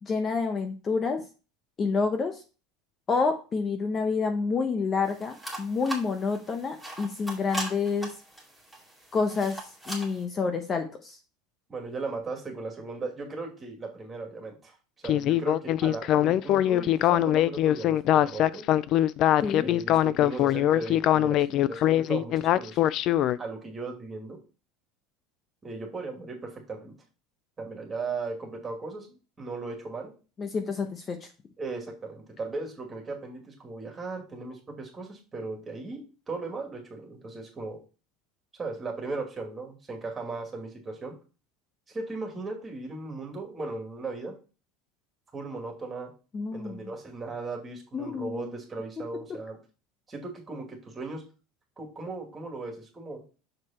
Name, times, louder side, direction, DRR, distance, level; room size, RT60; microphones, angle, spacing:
voice 1, 0.0-1.2 1.8-2.4 3.1-8.1 9.1-9.6 9.9-11.2 19.4-19.7 30.4-31.3 46.3-46.9 47.9-48.5, left 4 dB, 25° left, 6 dB, 0.8 m, -28 dB
sound 1, 5.0-10.2, right 1 dB, 5° left, 2.4 m, -40 dB
voice 2, 11.7-14.8 15.0-18.6 19.6-22.8 23.4-24.4 25.6-26.9 27.6-30.1 31.6-37.8 38.6-41.2 41.9-44.3 45.3-46.1 46.5-49.6 50.1-51.2 51.8-53.2, right 3 dB, 20° right, 1 dB, 2.4 m, -37 dB
Speech synthesizer, 15.0-23.4, left 12 dB, 45° left, 0.4 m, -22 dB
6.6 x 4.8 x 4.2 m, 0.34 s
supercardioid pair, 130°, 0 cm